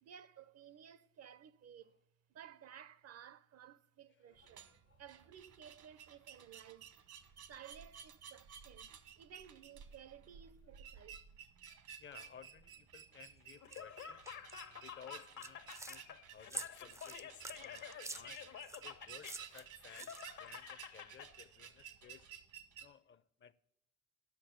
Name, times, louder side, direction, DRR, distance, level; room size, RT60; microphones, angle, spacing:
voice 1, 0.0-2.0 2.3-4.7 5.0-6.9 7.5-11.2, right 9 dB, 55° right, 0.6 m, -56 dB
voice 2, 4.1-5.0 12.0-14.2 14.7-18.5 18.8-20.1 20.4-22.3 22.8-23.5, left 8 dB, 40° left, 0.6 m, -58 dB
sound 1, 4.4-22.9, right 8 dB, 75° right, 1.2 m, -55 dB
Laughter, 13.6-21.3, left 8 dB, 75° left, 1.2 m, -50 dB
sound 2, 13.7-13.8 14.3-14.5 15.2-16.0 16.5-18.8 19.2-20.5, right 2 dB, 10° right, 0.4 m, -47 dB
12.0 x 6.3 x 7.6 m
cardioid pair, 90°, 30 cm